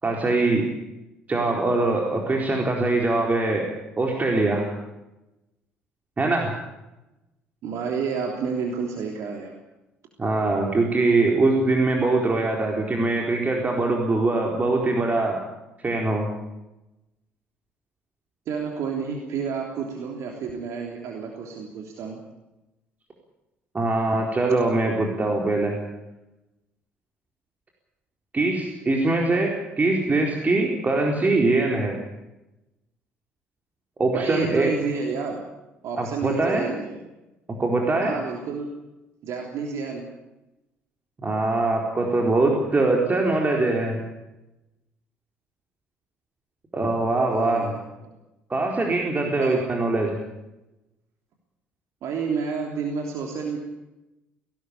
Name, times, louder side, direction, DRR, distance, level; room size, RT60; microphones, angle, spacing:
voice 1, 0.0-0.7 1.3-3.7 4.0-4.6 6.2-6.5 10.2-15.4 15.8-16.3 23.7-25.8 28.3-32.0 34.0-34.7 36.0-36.6 37.6-38.1 41.2-44.0 46.7-47.7 48.5-50.2, right 2 dB, 25° right, 0 dB, 4.3 m, -22 dB
voice 2, 7.6-9.5 18.5-22.2 34.1-35.4 35.8-37.0 38.0-38.7 39.2-40.1 47.3-48.1 49.4-49.6 52.0-53.6, right 5 dB, 55° right, 1 dB, 3.3 m, -30 dB
19.5 x 18.0 x 8.7 m, 0.96 s
figure-of-eight pair, 50°, 6 cm